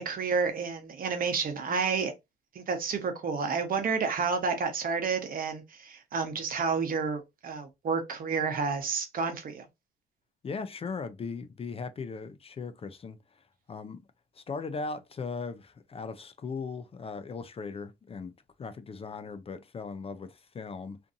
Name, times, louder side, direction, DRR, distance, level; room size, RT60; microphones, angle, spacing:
voice 1, 0.0-2.1 2.5-9.6, right 5 dB, 55° right, 0.9 m, -30 dB
voice 2, 10.4-14.0 14.3-18.3 18.6-21.0, left 4 dB, 35° left, 0.5 m, -38 dB
2.5 x 2.5 x 2.5 m
supercardioid pair, 75°, 18 cm